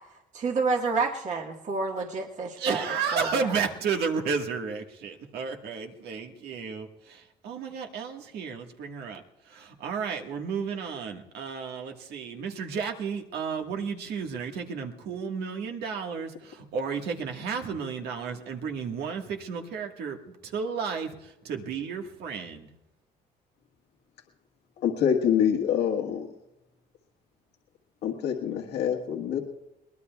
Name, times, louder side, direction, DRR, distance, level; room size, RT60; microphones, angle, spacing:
voice 1, 0.3-3.6, right 4 dB, 45° right, 1 dB, 1.6 m, -29 dB
voice 2, 2.6-9.2 9.5-20.2 20.4-21.1 21.4-22.7, right 5 dB, 75° right, 3 dB, 1.6 m, -32 dB
voice 3, 24.8-26.3 28.0-29.4, left 8 dB, 80° left, 0 dB, 1.6 m, -25 dB
22.5 x 19.5 x 2.3 m, 0.91 s
cardioid pair, 110°, 17 cm